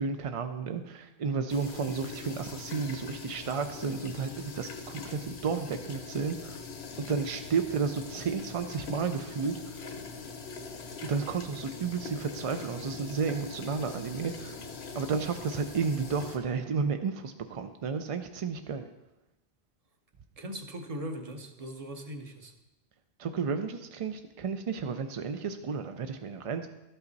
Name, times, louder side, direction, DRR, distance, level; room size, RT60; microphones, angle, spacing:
voice 1, 0.0-6.6 7.0-9.9 11.0-14.6 14.9-18.9 23.2-26.7, right 5 dB, 60° right, 7 dB, 0.3 m, -32 dB
sound 1, 1.5-16.4, left 5 dB, 70° left, 1.1 m, -42 dB
voice 2, 20.4-22.5, right 1 dB, 40° right, 6 dB, 0.8 m, -39 dB
12.0 x 5.6 x 3.9 m, 0.98 s
omnidirectional pair, 1.1 m